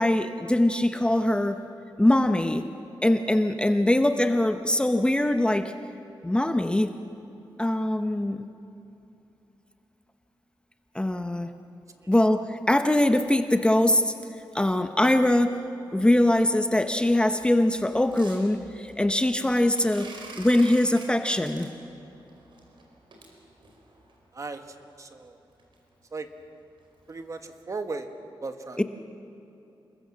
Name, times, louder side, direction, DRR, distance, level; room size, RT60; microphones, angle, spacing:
voice 1, 0.0-1.6 2.0-2.7 3.0-5.7 6.2-6.9 7.6-8.5 10.9-11.5 12.1-14.1 14.5-15.7 15.9-20.1 20.4-21.7 28.8-28.9, left 1 dB, 10° left, 8 dB, 0.8 m, -22 dB
sound 1, 16.7-24.2 24.8-24.9 25.2-25.3 25.6-25.7 26.0-26.2 26.6-26.8 27.1-27.2 27.7-27.8, right 3 dB, 70° right, 4.9 m, -48 dB
voice 2, 25.0-25.4 26.1-26.3 27.1-28.1 28.4-28.8, right 3 dB, 40° right, 7 dB, 1.6 m, -36 dB
28.0 x 21.0 x 7.5 m, 2.9 s
wide cardioid pair, 130°, 8 cm